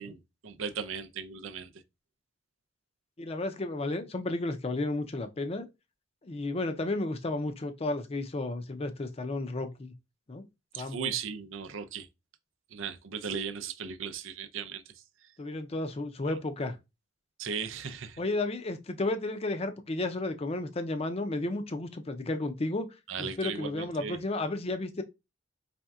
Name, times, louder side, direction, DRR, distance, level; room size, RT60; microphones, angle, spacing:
voice 1, 0.0-1.7 10.7-12.1 12.7-14.9 17.4-18.2 23.1-24.2, right 6 dB, 85° right, 0.5 m, -37 dB
voice 2, 3.2-5.7 6.2-9.9 10.3-10.4 10.8-11.1 15.4-16.7 18.2-22.9 23.2-25.0, left 2 dB, 30° left, 0.5 m, -32 dB
4.2 x 3.5 x 2.3 m
head